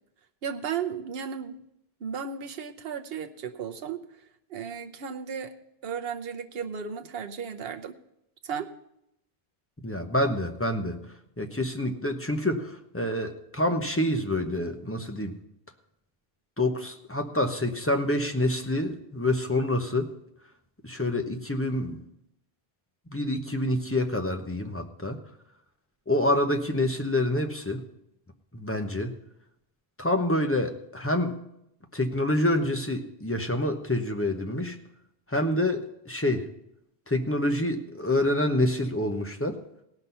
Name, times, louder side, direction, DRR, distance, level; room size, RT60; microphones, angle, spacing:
voice 1, 0.4-1.6 2.0-4.0 4.5-5.5 5.8-8.0 8.4-8.7, right 7 dB, 70° right, 7 dB, 1.0 m, -34 dB
voice 2, 9.8-11.0 11.4-15.4 16.6-20.1 20.8-22.0 23.1-25.2 26.1-27.8 28.5-29.1 30.0-31.3 31.9-34.8 35.3-36.5 37.1-39.6, left 1 dB, 15° left, 5 dB, 0.9 m, -27 dB
17.5 x 6.0 x 5.5 m, 0.80 s
omnidirectional pair, 1.1 m